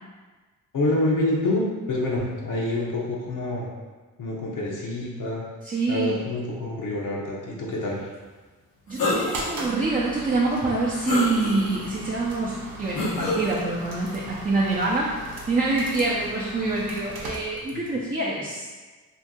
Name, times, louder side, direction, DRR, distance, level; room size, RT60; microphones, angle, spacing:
voice 1, 0.7-3.7 4.2-5.4 5.9-8.0, left 2 dB, 65° left, -4 dB, 0.8 m, -27 dB
voice 2, 5.6-6.2 8.9-15.2 15.5-18.7, right 3 dB, 25° right, -5 dB, 0.5 m, -26 dB
sound 1, 9.0-9.6 10.1-10.2 11.0-11.9 13.0-13.5, left 2 dB, 90° left, 1.0 m, -26 dB
sound 2, 9.3-18.0, right 1 dB, 75° right, 0.7 m, -39 dB
2.8 x 2.5 x 3.6 m, 1.3 s
cardioid pair, 90°, 34 cm